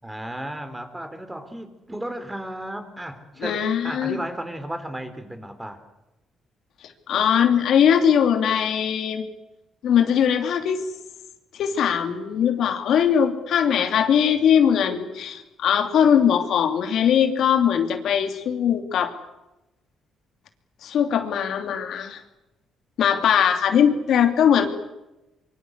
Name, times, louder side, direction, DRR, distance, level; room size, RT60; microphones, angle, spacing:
voice 1, 0.0-5.8, right 1 dB, 10° right, 9 dB, 3.9 m, -34 dB
voice 2, 3.4-4.2 7.1-9.3 9.8-10.8 11.5-19.1 20.8-22.2 23.0-24.7, left 8 dB, 70° left, 7 dB, 2.9 m, -20 dB
24.5 x 23.5 x 8.2 m, 0.97 s
cardioid pair, 90°, 0 cm